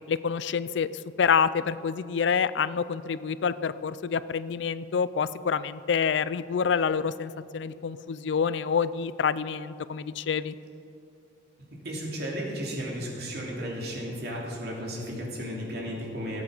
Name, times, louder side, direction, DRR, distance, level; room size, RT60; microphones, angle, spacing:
voice 1, 0.1-0.9 1.2-10.5, left 6 dB, 70° left, 16 dB, 0.4 m, -27 dB
voice 2, 11.8-16.4, equal, 60° right, -2 dB, 2.7 m, -34 dB
17.5 x 8.4 x 5.0 m, 2.6 s
head